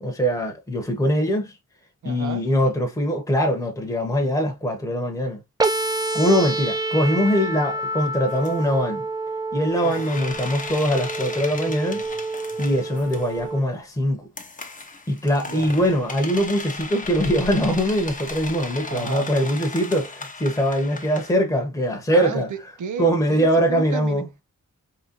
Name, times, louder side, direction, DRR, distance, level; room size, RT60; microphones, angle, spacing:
voice 1, 0.0-1.5 2.0-5.4 6.1-9.0 9.5-12.0 12.6-14.2 15.1-22.5 23.0-24.4, equal, 10° left, 1.0 m, -22 dB
voice 2, 2.0-2.4 9.8-10.1 15.4-15.7 18.9-19.3 22.1-24.2, right 7 dB, 70° right, 0.6 m, -33 dB
sound 1, 5.6-13.6, right 2 dB, 15° right, 0.4 m, -28 dB
sound 2, 8.3-8.5 9.7-13.5 14.4-21.3, left 3 dB, 25° left, 0.7 m, -36 dB
3.9 x 3.1 x 2.9 m
wide cardioid pair, 140°, 32 cm